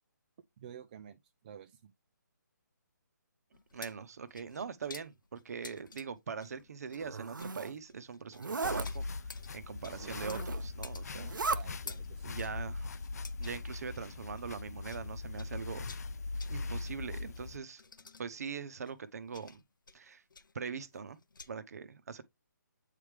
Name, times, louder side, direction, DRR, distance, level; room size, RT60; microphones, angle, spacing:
voice 1, 0.6-1.2 1.4-1.9 9.8-10.2 11.5-12.3, right 9 dB, 25° right, 0.4 m, -51 dB
sound 1, 3.5-15.1 15.3-21.5, left 4 dB, 90° left, 0.7 m, -53 dB
voice 2, 3.7-9.3 9.5-11.4 12.2-12.9 13.4-15.9 16.5-17.8 18.2-19.6 19.9-20.2 20.5-21.2 21.5-22.2, right 6 dB, 50° right, 0.9 m, -42 dB
Zipper (clothing), 6.9-7.7 8.3-8.9 10.0-10.7 11.1-11.6, right 4 dB, 85° right, 0.7 m, -36 dB
sound 2, 8.6-17.6, left 3 dB, 55° left, 0.5 m, -40 dB
8.4 x 3.3 x 3.4 m
hypercardioid pair, 160°, 10 cm